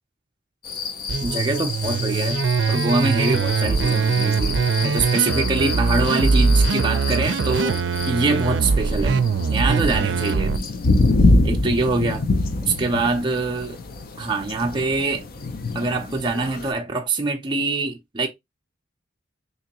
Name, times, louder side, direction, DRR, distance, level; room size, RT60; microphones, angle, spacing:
sound 1, 0.6-16.7, left 2 dB, 55° left, 0.5 m, -26 dB
sound 2, 1.1-10.6, right 4 dB, 85° right, 0.4 m, -22 dB
voice 1, 1.2-2.4 2.7-7.8 8.1-10.7 11.4-12.3 12.7-13.8 14.2-15.3 15.7-18.3, right 3 dB, 25° right, 0.4 m, -24 dB
3.6 x 2.9 x 2.9 m
head